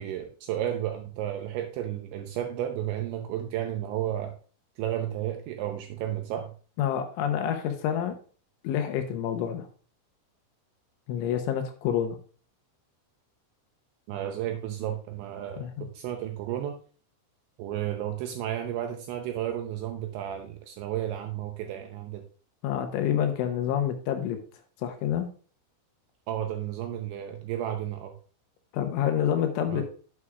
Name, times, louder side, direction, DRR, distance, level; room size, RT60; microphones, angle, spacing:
voice 1, 0.0-4.3 4.8-6.5 14.1-16.7 17.6-22.2 26.3-28.1 29.7-29.8, right 11 dB, 90° right, 4 dB, 2.7 m, -32 dB
voice 2, 6.8-8.1 8.6-9.7 11.1-12.2 15.6-15.9 22.6-24.4 24.8-25.3 28.7-29.8, left 9 dB, 80° left, 6 dB, 3.1 m, -28 dB
9.4 x 8.5 x 2.4 m, 0.40 s
omnidirectional pair, 6.0 m